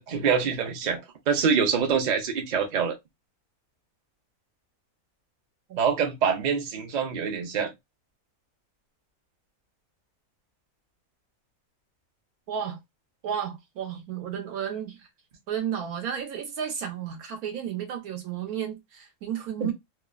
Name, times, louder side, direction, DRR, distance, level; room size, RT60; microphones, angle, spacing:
voice 1, 0.0-2.9 5.8-7.7 19.6-19.7, right 6 dB, 45° right, 0.6 m, -25 dB
voice 2, 12.5-12.8 13.2-15.1 15.5-19.7, right 8 dB, 85° right, 1.3 m, -32 dB
3.1 x 2.0 x 2.3 m
omnidirectional pair, 1.5 m